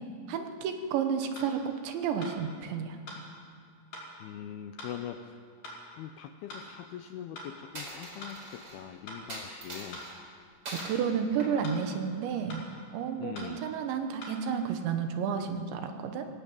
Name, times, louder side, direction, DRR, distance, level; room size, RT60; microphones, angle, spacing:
voice 1, 0.3-3.0 10.7-12.6 12.9-16.3, right 7 dB, 80° right, 6 dB, 3.5 m, -31 dB
sound 1, 1.4-1.5 2.2-2.4 3.1-3.2 3.9-4.1 4.8-5.0 5.6-5.8 6.5-6.7 7.4-7.5 8.2-8.4 9.1-9.2 9.9-10.1 10.8-11.0 11.6-11.8 12.5-12.7 13.4-13.5 14.2-14.4, left 1 dB, 55° left, 6.7 m, -43 dB
voice 2, 4.2-5.4 5.9-10.0 13.2-13.6, left 10 dB, 80° left, 7 dB, 2.3 m, -42 dB
Coin (dropping), 7.7-8.8 9.3-10.1 10.7-11.0 11.4-12.5, right 1 dB, 25° right, 4.5 m, -43 dB
22.0 x 16.5 x 8.8 m, 2.2 s
omnidirectional pair, 5.3 m